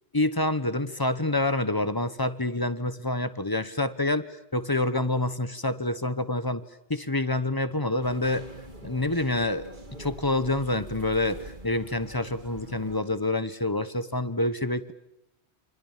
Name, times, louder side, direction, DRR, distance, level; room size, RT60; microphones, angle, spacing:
voice 1, 0.1-6.6 6.9-8.5 8.8-9.7 10.0-14.9, left 2 dB, 20° left, 13 dB, 1.1 m, -27 dB
sound 1, 8.0-13.0, right 1 dB, 45° right, 2.7 m, -44 dB
28.5 x 25.5 x 7.4 m, 0.84 s
omnidirectional pair, 1.1 m